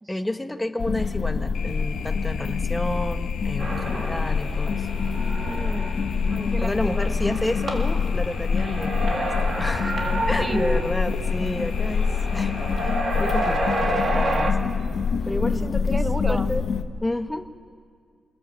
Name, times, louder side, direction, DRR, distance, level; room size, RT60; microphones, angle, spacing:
voice 1, 0.1-4.9 6.6-10.0 10.3-14.7 15.3-16.0 16.3-16.6 17.0-17.5, left 1 dB, 10° left, 6 dB, 1.0 m, -30 dB
sound 1, 0.8-16.8, left 5 dB, 50° left, 1.2 m, -25 dB
sound 2, 1.5-13.8, left 7 dB, 85° left, 1.5 m, -42 dB
sound 3, 3.6-14.5, right 1 dB, 40° right, 2.4 m, -30 dB
voice 2, 5.4-6.0 6.3-7.1 10.4-10.7 15.3-16.5, right 2 dB, 15° right, 12 dB, 0.7 m, -33 dB
27.0 x 25.5 x 7.3 m, 2.1 s
wide cardioid pair, 180°, 0 cm